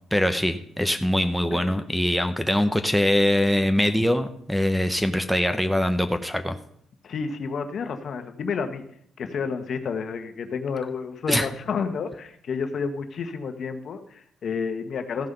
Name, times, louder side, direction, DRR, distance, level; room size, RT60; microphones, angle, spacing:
voice 1, 0.1-6.6 11.3-11.5, left 1 dB, ahead, 10 dB, 0.8 m, -23 dB
voice 2, 7.0-8.8 9.2-15.3, left 5 dB, 55° left, 7 dB, 1.3 m, -30 dB
14.5 x 5.6 x 6.7 m, 0.67 s
cardioid pair, 90°, 0 cm